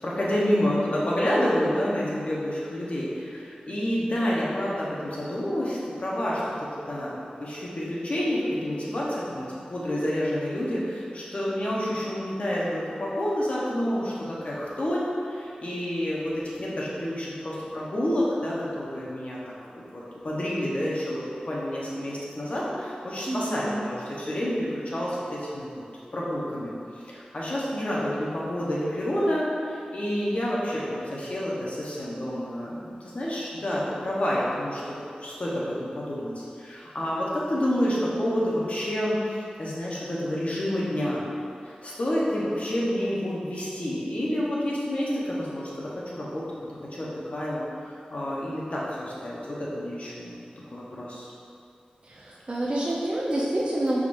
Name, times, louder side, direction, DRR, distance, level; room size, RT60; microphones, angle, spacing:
voice 1, 0.0-25.8 26.1-41.2 41.7-46.5 46.9-50.3 50.7-51.3, equal, 50° left, -6 dB, 0.9 m, -29 dB
voice 2, 23.3-23.8 52.0-54.0, right 1 dB, 40° right, -6 dB, 0.5 m, -28 dB
4.8 x 3.6 x 2.6 m, 2.5 s
wide cardioid pair, 80°, 3 cm